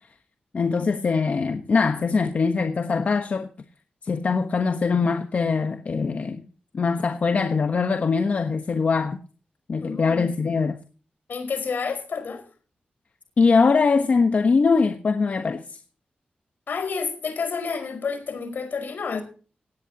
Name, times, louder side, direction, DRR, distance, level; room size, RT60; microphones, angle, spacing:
voice 1, 0.5-3.5 4.0-6.4 6.7-9.2 9.7-10.8 13.4-15.8, left 4 dB, 50° left, 1.2 m, -22 dB
voice 2, 9.8-10.3 11.3-12.4 16.7-19.2, left 5 dB, 75° left, 5.1 m, -29 dB
18.0 x 17.0 x 2.9 m
wide cardioid pair, 175°, 3 cm